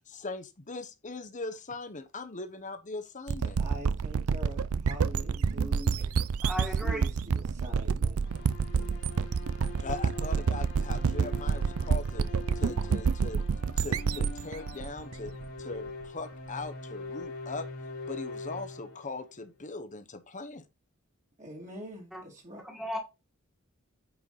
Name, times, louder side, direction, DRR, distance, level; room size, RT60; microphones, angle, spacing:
voice 1, 0.1-3.6 9.8-12.3 12.5-13.4 13.8-15.3 15.6-17.7 18.1-20.7, left 3 dB, 35° left, 1.0 m, -40 dB
sound 1, 3.3-15.9, right 5 dB, 75° right, 0.5 m, -28 dB
voice 2, 3.6-6.1 6.5-8.2 21.4-22.6, equal, 35° right, 2.5 m, -44 dB
voice 3, 6.4-7.1 22.1-22.2 22.6-23.0, equal, ahead, 1.8 m, -35 dB
sound 2, 8.2-19.4, left 3 dB, 85° left, 3.3 m, -43 dB
8.9 x 4.7 x 4.1 m
head